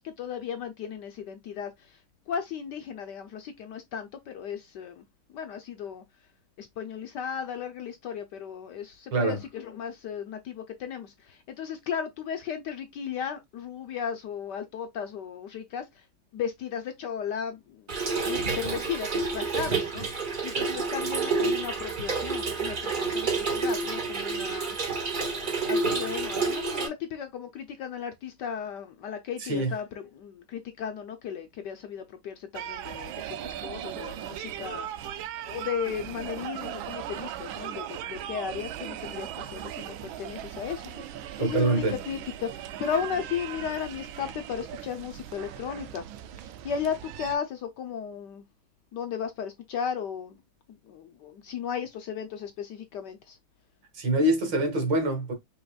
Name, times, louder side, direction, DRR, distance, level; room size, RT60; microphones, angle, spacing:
voice 1, 0.0-5.0 5.3-6.0 6.6-16.1 16.3-24.8 25.3-46.0 46.4-48.4 48.9-50.4 50.8-53.4, left 7 dB, 70° left, 1.1 m, -35 dB
Trickle dribble / Fill (with liquid), 17.9-26.9, right 4 dB, 40° right, 0.7 m, -29 dB
voice 2, 29.4-29.7 41.4-42.0 53.9-55.3, right 1 dB, 60° right, 2.2 m, -25 dB
sound 1, 32.5-47.4, right 11 dB, 80° right, 1.3 m, -38 dB
5.5 x 3.3 x 2.3 m
omnidirectional pair, 2.3 m